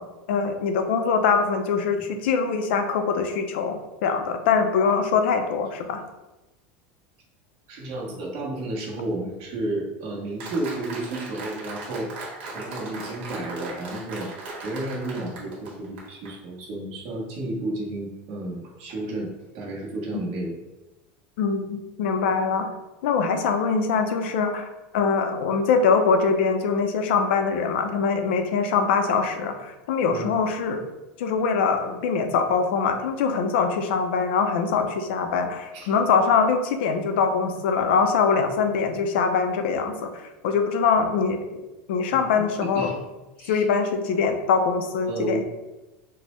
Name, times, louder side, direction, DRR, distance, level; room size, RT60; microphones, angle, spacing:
voice 1, 0.0-6.0 21.4-22.7 23.0-30.8 31.2-41.6 41.9-42.9 43.5-45.4, left 5 dB, 80° left, 6 dB, 0.4 m, -23 dB
voice 2, 7.7-12.1 12.5-14.3 14.6-20.5 30.1-30.3 35.7-36.0 42.1-42.2 42.6-43.0 43.4-43.7 45.1-45.4, right 2 dB, 50° right, -3 dB, 1.1 m, -32 dB
Applause, 10.4-16.3, right 2 dB, 80° right, 1.1 m, -38 dB
4.3 x 2.1 x 3.0 m, 1.1 s
supercardioid pair, 155°, 6 cm